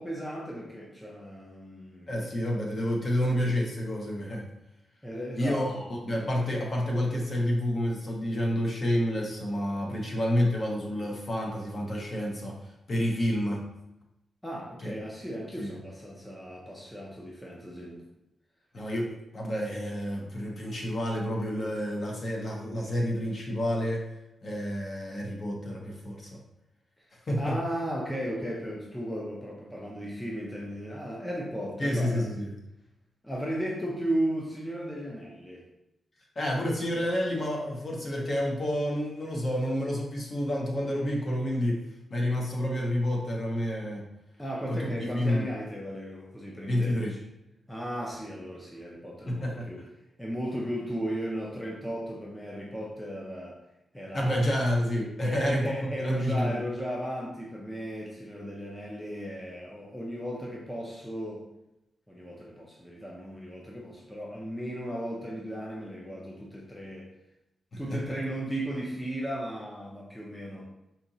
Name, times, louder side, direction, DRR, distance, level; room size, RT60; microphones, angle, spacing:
voice 1, 0.0-2.4 5.0-5.9 14.4-18.0 27.0-27.1 27.4-32.3 33.2-35.6 44.4-47.2 47.7-49.8 50.2-53.6 53.9-54.4 55.2-61.4 62.1-67.1 67.8-70.7, equal, 5° left, -4 dB, 0.5 m, -35 dB
voice 2, 2.1-4.5 5.4-12.6 12.9-13.6 14.8-14.9 15.6-15.7 18.7-24.1 24.4-26.4 27.1-27.6 31.8-32.5 36.4-41.8 42.1-44.0 44.7-45.5 46.6-47.1 49.3-49.7 54.1-56.6 67.7-68.2, equal, 40° left, -1 dB, 0.8 m, -29 dB
4.2 x 2.8 x 2.6 m, 0.89 s
wide cardioid pair, 160°, 0 cm